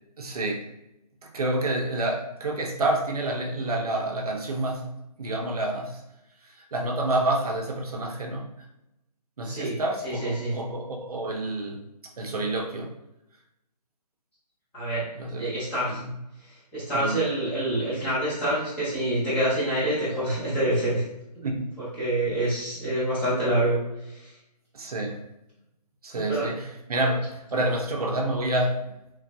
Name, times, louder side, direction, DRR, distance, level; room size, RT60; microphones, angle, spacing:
voice 1, 0.2-0.7 1.2-4.9 5.2-6.0 6.4-8.5 9.4-11.8 12.2-12.9 15.1-15.5 15.9-16.1 16.9-17.2 21.4-21.8 24.7-25.2 26.0-28.9, right 1 dB, 65° right, 1 dB, 0.5 m, -28 dB
voice 2, 9.4-9.8 10.0-10.5 14.7-15.0 15.4-16.0 16.4-21.0 22.0-24.3 26.3-26.5, right 1 dB, 5° left, -12 dB, 0.8 m, -26 dB
3.1 x 2.5 x 2.2 m, 0.87 s
figure-of-eight pair, 155°, 21 cm